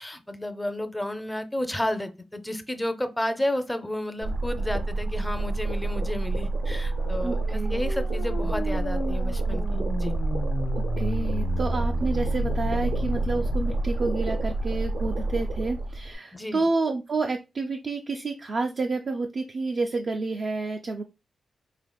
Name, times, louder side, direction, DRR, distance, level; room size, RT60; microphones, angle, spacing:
voice 1, 0.0-10.2 16.3-16.7, left 1 dB, 10° left, 9 dB, 0.5 m, -32 dB
sound 1, 4.2-16.1, right 2 dB, 70° right, 0.8 m, -28 dB
sound 2, 6.7-13.8, left 4 dB, 90° left, 1.0 m, -35 dB
voice 2, 7.2-7.8 11.0-21.0, right 3 dB, 50° right, 3 dB, 0.4 m, -29 dB
5.0 x 2.8 x 2.2 m, 0.25 s
cardioid pair, 100°, 0 cm